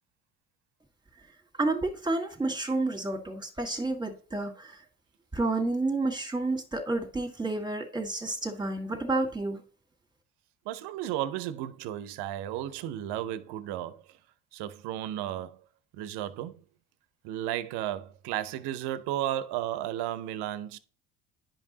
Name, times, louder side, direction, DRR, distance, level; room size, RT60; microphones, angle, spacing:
voice 1, 1.6-4.8 5.3-9.6, right 2 dB, 10° right, 1.8 m, -30 dB
voice 2, 10.7-14.0 14.5-15.6 15.9-16.6 17.2-20.8, right 12 dB, 65° right, 0.8 m, -34 dB
10.5 x 5.3 x 2.8 m
hypercardioid pair, 65°, 44 cm